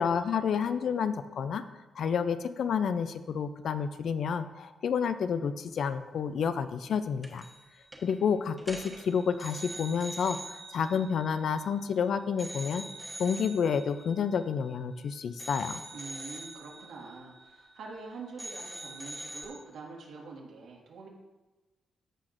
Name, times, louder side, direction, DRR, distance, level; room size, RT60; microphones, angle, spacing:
voice 1, 0.0-1.6 2.0-7.5 8.0-12.8 13.2-15.8, left 6 dB, 60° left, 11 dB, 0.5 m, -30 dB
sound 1, 7.2-7.7 7.9-8.1 8.6-11.9 12.4-15.0 15.4-18.1 18.4-19.5, right 1 dB, 5° right, 1.1 m, -44 dB
voice 2, 15.9-21.1, right 4 dB, 85° right, -2 dB, 1.9 m, -45 dB
14.5 x 5.8 x 2.6 m, 1.2 s
wide cardioid pair, 145°, 0 cm